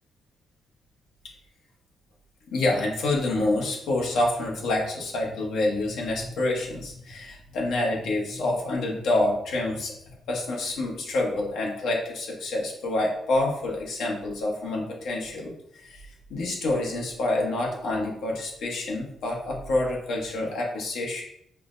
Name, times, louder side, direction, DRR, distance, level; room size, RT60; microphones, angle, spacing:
voice 1, 2.5-9.9 10.3-15.5 15.8-21.2, left 2 dB, 80° left, -1 dB, 0.9 m, -27 dB
5.4 x 2.1 x 2.5 m, 0.71 s
cardioid pair, 100°, 0 cm